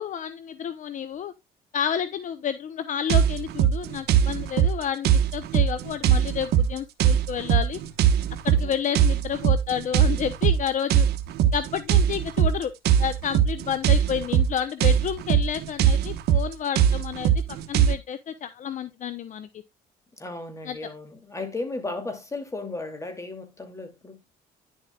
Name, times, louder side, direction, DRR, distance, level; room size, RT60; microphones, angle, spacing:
voice 1, 0.0-1.3 1.7-7.8 8.4-11.1 11.5-12.7 13.0-17.3 17.7-19.5 20.7-20.8, left 8 dB, 50° left, 0.7 m, -30 dB
Trance Beat & Synth, 3.1-17.9, right 9 dB, 70° right, 1.2 m, -22 dB
voice 2, 20.2-24.2, left 2 dB, 15° left, 2.6 m, -35 dB
10.5 x 7.3 x 2.3 m
cardioid pair, 110°, 17 cm